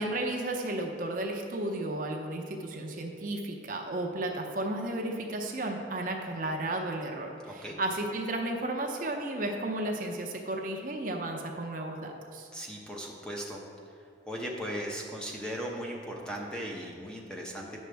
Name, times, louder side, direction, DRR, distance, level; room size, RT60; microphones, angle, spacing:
voice 1, 0.0-12.5, right 1 dB, 45° right, 2 dB, 0.7 m, -33 dB
voice 2, 7.4-7.8 12.5-13.6 14.3-17.8, equal, 5° left, -1 dB, 0.7 m, -37 dB
9.5 x 6.3 x 3.4 m, 2.4 s
head